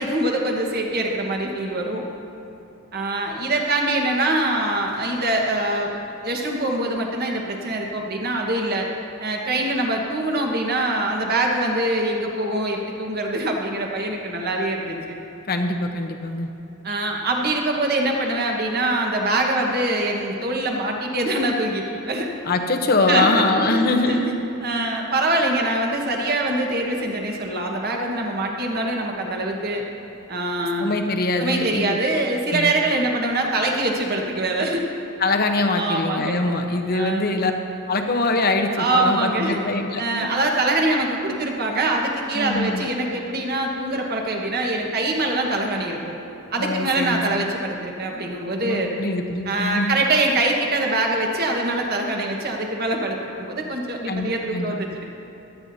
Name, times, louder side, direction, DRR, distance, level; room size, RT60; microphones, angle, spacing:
voice 1, 0.0-2.1 2.9-5.9 6.2-8.9 9.2-15.2 16.8-22.3 23.1-24.2 24.6-29.8 30.3-30.9 31.4-34.8 35.8-36.4 36.9-37.3 38.8-39.6 40.0-46.1 46.5-48.9 49.5-55.0, right 2 dB, 45° right, 1 dB, 1.4 m, -24 dB
voice 2, 15.5-16.5 22.4-24.4 30.8-32.0 32.5-32.7 35.2-37.5 37.9-40.4 42.3-42.9 46.6-47.5 48.6-50.0 54.1-54.8, left 2 dB, 45° left, 4 dB, 0.9 m, -23 dB
16.5 x 13.0 x 2.8 m, 2.9 s
head